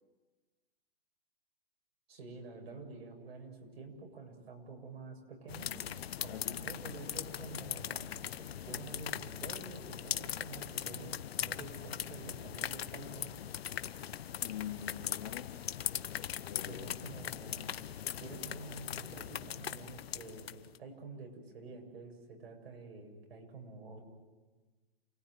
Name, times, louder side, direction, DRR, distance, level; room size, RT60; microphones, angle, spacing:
voice 1, 2.1-5.7 6.2-13.3 16.7-17.8 18.2-24.0, right 3 dB, 85° right, 2 dB, 7.7 m, -48 dB
sound 1, 5.5-20.8, left 10 dB, 90° left, 1.1 m, -40 dB
voice 2, 6.3-6.7 14.4-15.7 16.1-17.3, left 10 dB, 40° left, 6 dB, 1.1 m, -45 dB
29.0 x 19.5 x 9.6 m, 1.3 s
hypercardioid pair, 170°, 30 cm